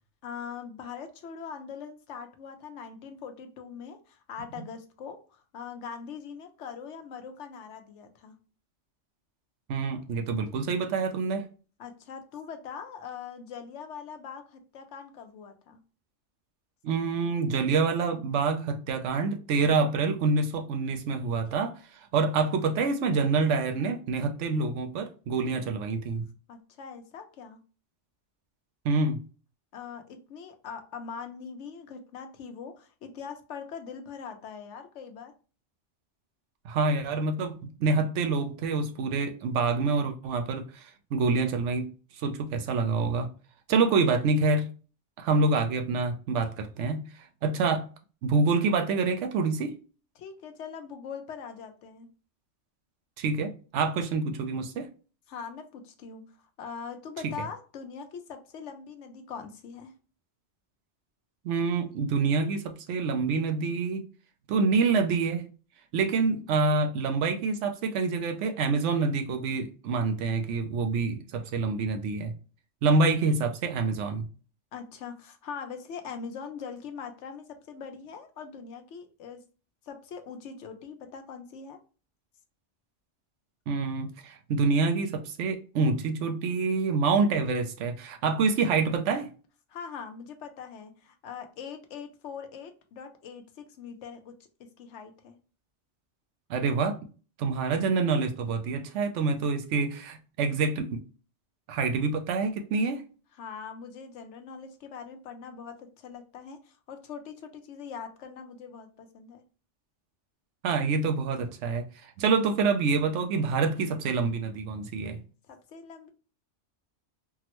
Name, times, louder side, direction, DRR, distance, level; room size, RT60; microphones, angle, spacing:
voice 1, 0.2-8.3 11.8-15.8 26.5-27.6 29.7-35.3 50.2-52.1 55.3-59.9 74.7-79.4 79.8-81.8 89.7-94.3 94.6-95.4 103.3-109.4 115.4-116.1, left 6 dB, 80° left, 0.9 m, -42 dB
voice 2, 9.7-11.5 16.8-26.2 28.8-29.2 36.6-41.9 42.2-43.3 43.7-44.7 45.2-47.0 47.4-47.9 48.2-49.7 53.2-54.9 57.2-57.3 61.4-64.1 64.5-65.5 65.9-72.3 72.8-74.3 83.7-89.3 96.5-97.0 97.4-101.0 101.7-103.0 110.6-115.2, right 4 dB, 80° right, 0.9 m, -27 dB
3.5 x 2.1 x 2.9 m
omnidirectional pair, 1.2 m